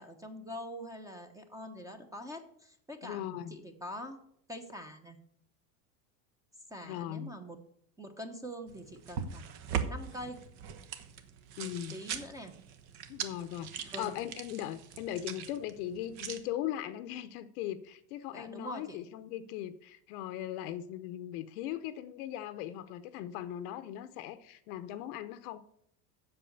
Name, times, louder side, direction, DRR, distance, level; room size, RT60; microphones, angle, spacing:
voice 1, 0.0-4.2 4.5-5.2 6.7-7.6 8.0-9.5 9.8-10.4 11.6-12.6 13.8-14.2 18.3-19.0, equal, 5° right, 6 dB, 0.9 m, -44 dB
voice 2, 3.0-3.5 6.8-7.3 11.6-12.0 13.1-25.6, left 12 dB, 65° left, 11 dB, 0.8 m, -39 dB
sound 1, 8.7-16.4, right 7 dB, 55° right, 1.2 m, -41 dB
7.8 x 6.3 x 8.0 m, 0.69 s
supercardioid pair, 130°, 48 cm